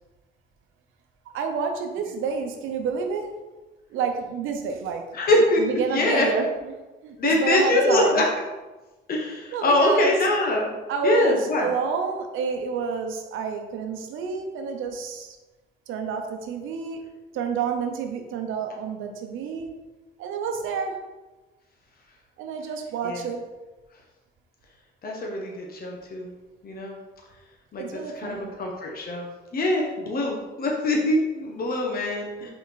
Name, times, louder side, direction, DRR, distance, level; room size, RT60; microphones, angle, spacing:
voice 1, 1.3-3.4 3.9-5.1 5.6-6.5 7.0-8.2 9.5-10.2 10.9-15.4 15.9-17.1 17.3-19.8 20.2-21.0 22.4-23.4 27.8-28.5, right 5 dB, 90° right, 5 dB, 0.8 m, -29 dB
voice 2, 5.1-6.3 7.2-8.2 9.1-10.7 11.0-11.7 23.0-23.2 25.0-26.3 26.6-27.0 27.7-29.3 29.5-32.5, left 1 dB, 50° left, 0 dB, 1.2 m, -23 dB
5.4 x 4.3 x 4.1 m, 1.2 s
cardioid pair, 90°, 20 cm